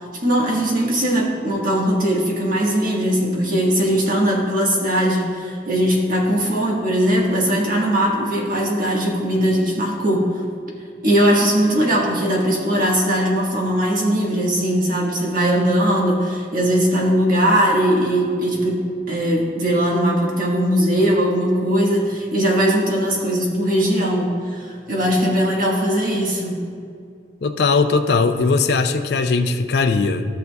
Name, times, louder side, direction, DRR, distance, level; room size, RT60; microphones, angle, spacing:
voice 1, 0.2-10.3 11.0-26.6, equal, 50° right, -2 dB, 1.5 m, -19 dB
voice 2, 27.4-30.3, left 4 dB, 65° left, 7 dB, 0.5 m, -19 dB
15.0 x 6.5 x 2.3 m, 2.3 s
head